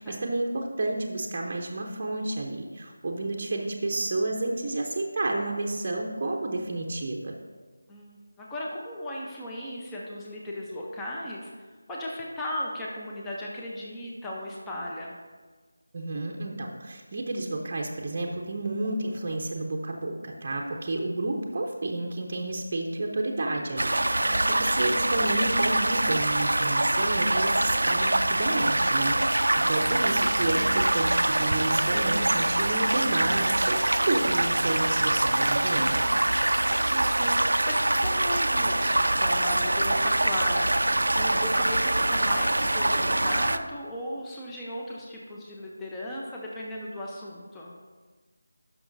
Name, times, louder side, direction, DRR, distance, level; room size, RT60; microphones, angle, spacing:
voice 1, 0.0-7.3 15.9-36.0, right 2 dB, 35° right, 0 dB, 0.7 m, -30 dB
voice 2, 7.9-15.2 24.2-24.9 36.7-40.7 41.1-47.7, left 1 dB, 10° left, -4 dB, 0.7 m, -36 dB
sound 1, 23.8-43.6, right 1 dB, 80° right, 0.4 m, -24 dB
12.5 x 6.0 x 2.6 m, 1.4 s
figure-of-eight pair, 165°, 0 cm